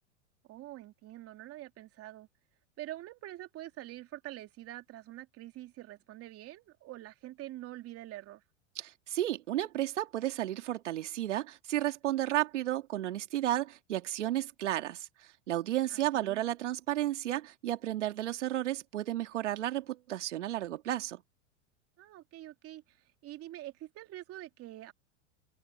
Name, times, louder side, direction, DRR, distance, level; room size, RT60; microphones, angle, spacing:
voice 1, 0.5-2.3 2.8-8.4 15.9-16.4 22.0-24.9, right 15 dB, 40° right, 2.7 m, -46 dB
voice 2, 8.8-21.2, right 13 dB, 80° right, 2.0 m, -33 dB
hypercardioid pair, 105°, 36 cm